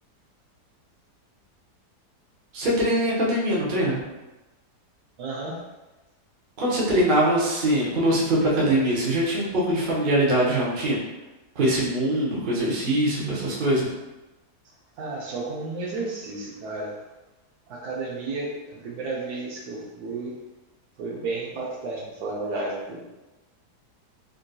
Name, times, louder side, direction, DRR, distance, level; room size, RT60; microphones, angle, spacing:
voice 1, 2.5-4.0 6.6-11.0 11.6-13.9, right 1 dB, 45° right, -5 dB, 0.6 m, -22 dB
voice 2, 5.2-5.6 15.0-17.0 17.7-20.4 21.0-23.0, right 3 dB, 70° right, -2 dB, 1.2 m, -32 dB
3.8 x 2.6 x 2.2 m, 1.1 s
omnidirectional pair, 1.8 m